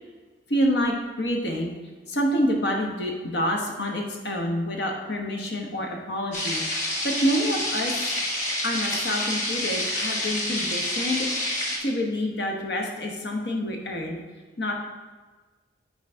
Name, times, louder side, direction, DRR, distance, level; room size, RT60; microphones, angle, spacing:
voice 1, 0.5-1.7 2.1-7.9 8.6-11.3 11.8-14.2 14.6-14.7, equal, 70° left, 1 dB, 1.1 m, -27 dB
sound 1, 6.3-11.8, left 1 dB, 45° left, 1.3 m, -28 dB
9.2 x 4.0 x 3.6 m, 1.3 s
head